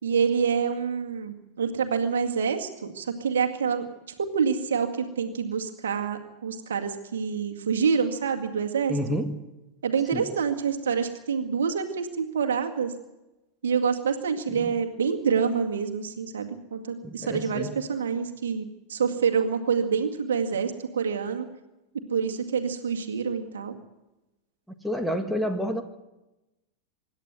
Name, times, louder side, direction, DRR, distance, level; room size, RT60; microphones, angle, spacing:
voice 1, 0.0-3.9 4.2-9.2 9.8-12.9 13.6-21.5 22.1-23.7, right 6 dB, 65° right, 4 dB, 2.1 m, -27 dB
voice 2, 8.9-9.3 10.1-10.2 14.5-14.7 17.0-17.7 24.8-25.8, equal, ahead, 6 dB, 1.7 m, -29 dB
25.5 x 11.0 x 9.2 m, 1.0 s
figure-of-eight pair, 90°, 0 cm